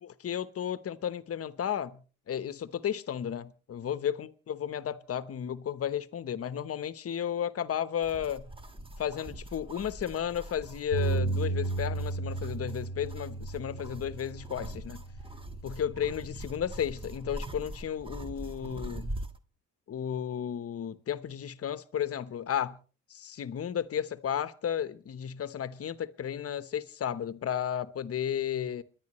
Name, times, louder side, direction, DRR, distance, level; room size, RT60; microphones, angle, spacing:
voice 1, 0.0-2.0 2.3-8.5 9.0-15.0 15.6-19.1 19.9-22.8 23.1-28.8, left 9 dB, 50° left, 1.0 m, -33 dB
sound 1, 8.0-19.4, right 1 dB, 20° right, 1.4 m, -43 dB
Bass guitar, 10.9-17.2, right 3 dB, 70° right, 2.1 m, -35 dB
29.0 x 10.5 x 3.1 m
cardioid pair, 90°, 30 cm